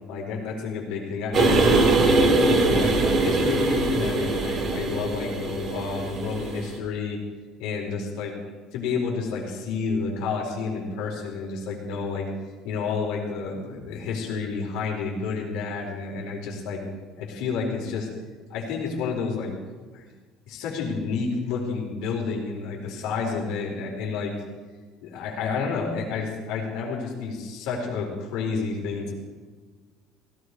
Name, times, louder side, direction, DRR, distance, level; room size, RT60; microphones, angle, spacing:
voice 1, 0.1-2.2 2.7-7.2 7.6-8.4 8.7-12.3 12.6-16.8 17.2-18.1 18.5-19.5 19.9-20.0 20.5-24.3 25.0-29.1, left 5 dB, 70° left, -1 dB, 4.4 m, -30 dB
sound 1, 1.3-6.8, right 2 dB, 35° right, 2.4 m, -22 dB
17.5 x 14.5 x 4.9 m, 1.4 s
cardioid pair, 150°, 0 cm